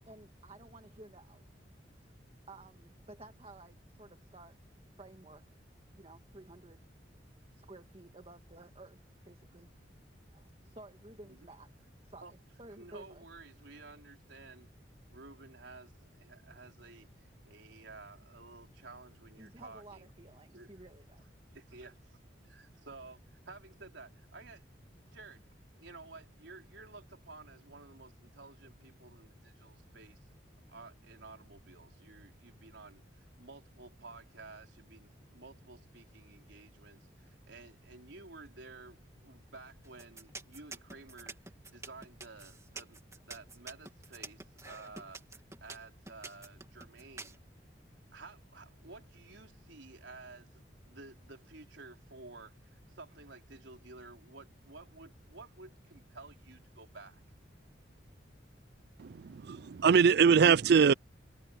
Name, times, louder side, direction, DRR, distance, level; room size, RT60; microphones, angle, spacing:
voice 1, 0.0-1.5 2.5-4.6 5.0-5.4 5.9-6.9 7.5-9.7 10.3-11.7 12.0-13.2 19.4-21.2 21.8-21.9, right 2 dB, 30° right, 1.9 m, -54 dB
voice 2, 12.8-14.7 15.1-20.1 20.5-20.7 21.5-22.0 22.4-25.5 25.8-30.2 30.7-47.4 48.1-57.2, right 3 dB, 80° right, 4.2 m, -53 dB
sound 1, 39.8-47.4, right 3 dB, 15° right, 2.7 m, -47 dB
voice 3, 59.0-60.9, right 6 dB, 60° right, 0.4 m, -23 dB
head